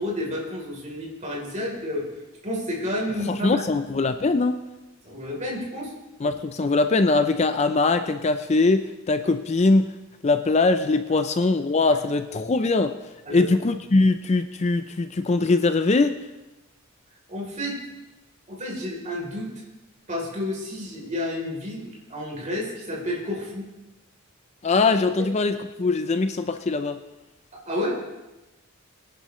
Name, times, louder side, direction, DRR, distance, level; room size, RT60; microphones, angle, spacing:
voice 1, 0.0-2.1 2.4-3.6 5.0-5.9 13.2-13.5 17.3-17.8 18.5-19.5 20.1-23.7 25.2-25.3 27.5-28.0, left 1 dB, 35° right, -2 dB, 3.4 m, -30 dB
voice 2, 3.3-4.6 6.2-9.9 10.2-12.9 13.3-16.1 24.6-27.0, left 3 dB, 30° left, 9 dB, 0.4 m, -21 dB
22.5 x 10.5 x 3.1 m, 1.0 s
head